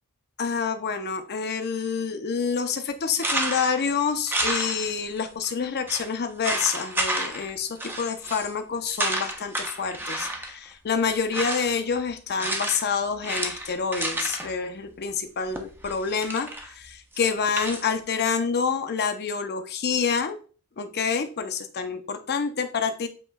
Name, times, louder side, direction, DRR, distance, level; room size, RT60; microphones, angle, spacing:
voice 1, 0.4-20.4 20.8-23.1, left 6 dB, 50° left, 8 dB, 0.6 m, -27 dB
sound 1, 3.1-3.8 4.3-5.2 5.4-5.5 5.9-6.1 6.4-7.5 7.8-8.5 8.9-10.6 11.1-11.8 12.4-12.9 13.2-14.5 15.5-16.7 17.1-17.9, right 1 dB, 10° right, 0.6 m, -30 dB
7.7 x 3.0 x 2.2 m, 0.38 s
head